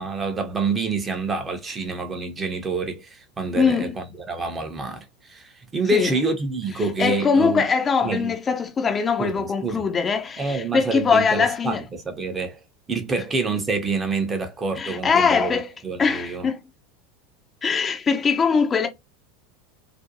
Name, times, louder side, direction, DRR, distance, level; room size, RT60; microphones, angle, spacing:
voice 1, 0.0-7.7 8.0-8.3 9.2-9.9 10.4-12.6 12.9-16.5, right 3 dB, 20° right, 0.6 m, -27 dB
voice 2, 3.5-3.9 5.9-6.1 7.0-11.8 14.8-15.7 16.0-16.6 17.6-18.9, left 5 dB, 25° left, 0.4 m, -21 dB
2.5 x 2.1 x 2.7 m
figure-of-eight pair, 80°, 0 cm